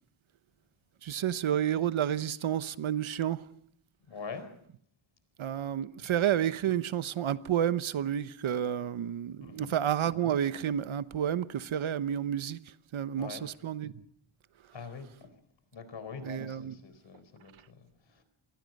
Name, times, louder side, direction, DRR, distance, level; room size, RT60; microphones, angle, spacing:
voice 1, 1.0-3.5 5.4-14.0 16.2-16.8, right 10 dB, 75° right, 1.0 m, -30 dB
voice 2, 4.0-4.5 6.0-6.1 9.4-9.7 13.2-13.5 14.7-15.3 15.7-18.2, left 5 dB, 65° left, 4.2 m, -44 dB
27.5 x 22.5 x 5.3 m
wide cardioid pair, 160°, 48 cm